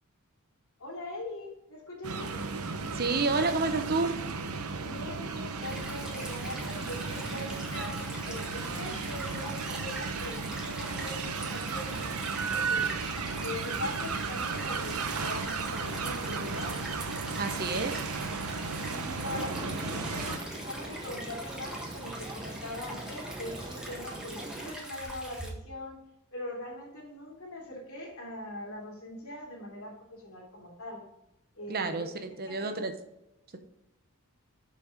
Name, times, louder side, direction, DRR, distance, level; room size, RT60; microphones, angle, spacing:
voice 1, 0.8-2.4 4.8-12.9 13.4-16.8 18.8-26.0 26.3-31.0 31.5-32.2 32.5-32.8, left 1 dB, 70° left, -1 dB, 3.0 m, -41 dB
sound 1, 2.0-20.4, right 4 dB, 85° right, 0.8 m, -34 dB
voice 2, 2.9-4.2 17.4-18.0 31.7-32.9, right 3 dB, 45° right, 7 dB, 0.8 m, -29 dB
Stream / Trickle dribble, 5.6-25.5, right 1 dB, 5° right, 1.5 m, -43 dB
sound 2, 19.2-24.8, right 2 dB, 20° right, 0.6 m, -42 dB
7.2 x 6.1 x 5.0 m, 0.86 s
head